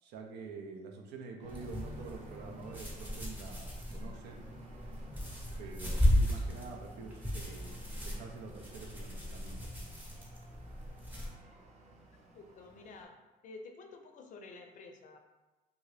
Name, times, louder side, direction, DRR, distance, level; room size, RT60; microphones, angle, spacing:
voice 1, 0.0-4.4 5.6-9.7, right 4 dB, 85° right, 2 dB, 0.5 m, -47 dB
sound 1, 1.4-13.0, right 2 dB, 40° right, 0.5 m, -54 dB
sound 2, 1.5-11.3, left 1 dB, 10° right, 0.7 m, -35 dB
voice 2, 12.3-13.2 13.4-15.2, left 3 dB, 50° left, 4 dB, 0.4 m, -50 dB
2.7 x 2.5 x 3.2 m, 1.1 s
cardioid pair, 110°, 17 cm